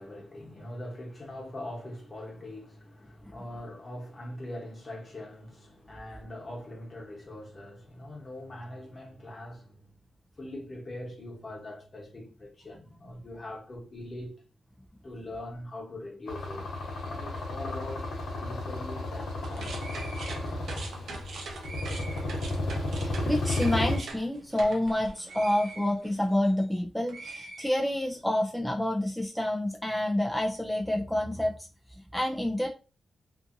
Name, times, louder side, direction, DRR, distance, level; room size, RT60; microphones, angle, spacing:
voice 1, 0.0-10.0 10.4-14.4 15.0-16.7 17.0-18.1 18.4-20.5 21.0-21.2, left 1 dB, 35° left, 1.1 m, -42 dB
sound 1, 16.3-24.0, left 2 dB, 85° left, 0.7 m, -33 dB
sound 2, 19.4-26.8 27.1-28.3, right 3 dB, 80° right, 0.6 m, -43 dB
voice 2, 23.0-32.7, left 1 dB, ahead, 0.3 m, -28 dB
2.6 x 2.5 x 2.5 m
cardioid pair, 85°, 0 cm